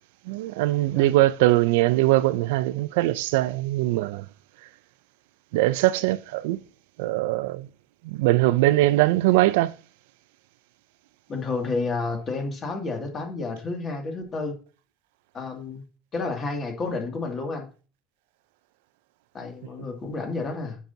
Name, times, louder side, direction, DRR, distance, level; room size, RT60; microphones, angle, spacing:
voice 1, 0.3-4.3 5.5-6.6 7.0-7.7 8.0-9.7, right 17 dB, 85° right, 0.4 m, -21 dB
voice 2, 11.3-14.5 15.3-15.8 16.1-17.7 19.3-20.8, left 3 dB, 30° left, 2.3 m, -30 dB
9.1 x 6.0 x 2.7 m
supercardioid pair, 125°, 0 cm